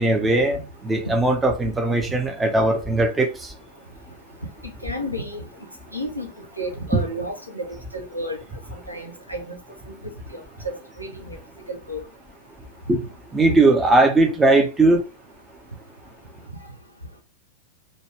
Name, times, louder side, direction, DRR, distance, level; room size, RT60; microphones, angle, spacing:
voice 1, 0.0-3.3 6.9-7.0 12.9-13.0 13.3-15.0, right 2 dB, 15° right, 0.6 m, -19 dB
voice 2, 4.8-5.4 5.9-6.3 6.6-7.7 7.9-8.4 8.7-9.6 9.9-10.0 11.0-11.4 11.7-12.0 13.5-13.6, equal, 90° right, 0.6 m, -31 dB
2.6 x 2.2 x 3.2 m
figure-of-eight pair, 90°, 0 cm